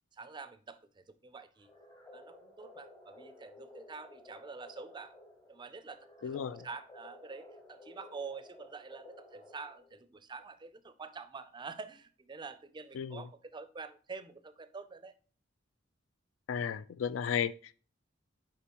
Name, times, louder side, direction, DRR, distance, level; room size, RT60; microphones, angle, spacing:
voice 1, 0.1-1.7 2.1-5.2 5.4-15.1, right 4 dB, 25° right, 0.4 m, -47 dB
sound 1, 1.6-10.0, left 2 dB, 20° left, 0.8 m, -55 dB
voice 2, 6.2-6.6 12.9-13.2 16.5-17.5, left 7 dB, 85° left, 0.3 m, -33 dB
6.9 x 5.0 x 2.9 m
head